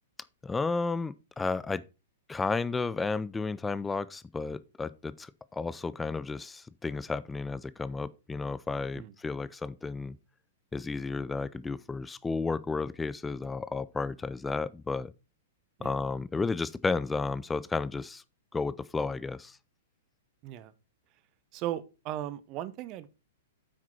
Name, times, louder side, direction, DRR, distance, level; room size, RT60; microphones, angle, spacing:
voice 1, 0.4-1.8 2.3-10.2 10.7-15.1 15.8-18.2 18.5-19.6, left 4 dB, 10° left, 0.4 m, -32 dB
voice 2, 21.5-23.1, right 12 dB, 35° right, 0.8 m, -37 dB
8.6 x 6.0 x 4.4 m
figure-of-eight pair, 105°, 0 cm